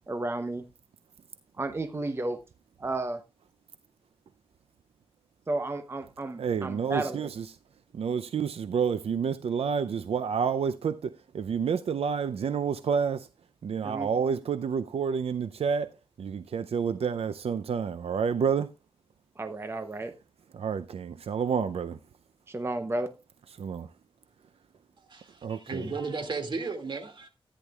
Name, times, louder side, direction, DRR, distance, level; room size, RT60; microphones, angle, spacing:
voice 1, 0.1-0.6 1.6-2.4 2.8-3.2 5.5-7.3 13.8-14.1 19.4-20.1 22.5-23.1, right 2 dB, 25° right, 0.7 m, -32 dB
voice 2, 6.4-7.5 7.9-13.3 13.6-15.9 16.2-18.7 20.5-22.0 23.6-23.9 25.4-25.9, right 6 dB, 85° right, 0.5 m, -29 dB
voice 3, 25.1-27.3, right 4 dB, 55° right, 2.2 m, -34 dB
14.0 x 10.0 x 2.3 m
wide cardioid pair, 150°, 10 cm